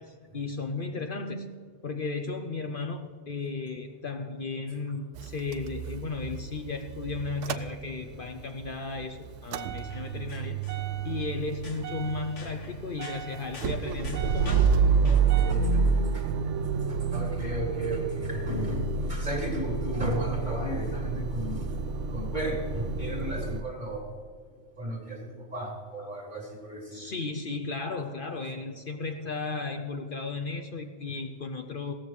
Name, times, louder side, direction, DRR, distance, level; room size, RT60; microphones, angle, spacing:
voice 1, 0.0-1.5 1.8-10.6 11.0-14.8 26.0-26.1 26.9-31.9, left 3 dB, 50° left, 6 dB, 0.8 m, -35 dB
Motor vehicle (road) / Engine starting / Idling, 5.2-8.3 8.6-23.6, right 5 dB, 90° right, 1.0 m, -29 dB
sound 1, 9.8-15.3, left 4 dB, 80° left, 1.7 m, -48 dB
voice 2, 15.0-15.8 16.1-16.3 16.9-21.7 22.1-24.1 24.8-27.0, right 1 dB, 40° right, -1 dB, 3.3 m, -34 dB
16.5 x 14.0 x 3.2 m, 2.1 s
omnidirectional pair, 1.2 m